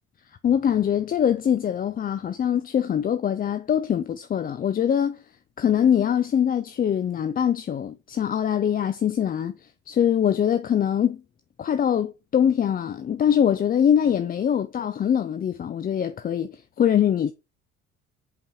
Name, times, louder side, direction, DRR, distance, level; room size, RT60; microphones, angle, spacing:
voice 1, 0.4-5.2 5.6-9.6 9.9-11.2 11.6-17.3, left 9 dB, 25° left, 0.4 m, -23 dB
5.4 x 4.1 x 4.4 m
figure-of-eight pair, 45°, 41 cm